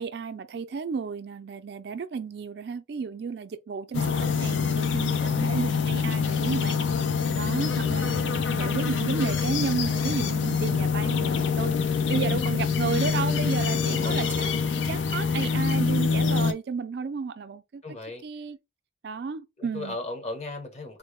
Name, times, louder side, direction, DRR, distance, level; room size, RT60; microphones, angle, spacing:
voice 1, 0.0-6.8 7.4-14.5 14.8-17.8 18.2-18.6 19.0-20.0, right 5 dB, 60° right, 0.4 m, -32 dB
sound 1, 3.9-16.5, left 5 dB, 80° left, 0.5 m, -25 dB
voice 2, 4.7-5.4 11.7-12.2 13.7-14.2 17.8-18.2 19.6-21.0, left 2 dB, 35° left, 0.8 m, -39 dB
3.7 x 2.1 x 3.0 m
head